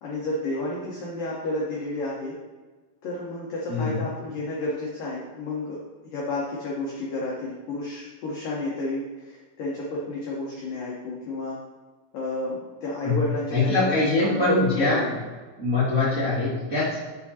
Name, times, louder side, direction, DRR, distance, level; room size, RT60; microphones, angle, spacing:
voice 1, 0.0-2.4 3.0-5.8 6.1-11.6 12.1-15.1, left 2 dB, 85° left, -5 dB, 1.9 m, -31 dB
voice 2, 3.7-4.0 13.0-13.2 13.5-15.1 15.6-17.0, left 3 dB, 40° right, -11 dB, 1.2 m, -23 dB
7.3 x 7.2 x 2.8 m, 1.3 s
omnidirectional pair, 5.7 m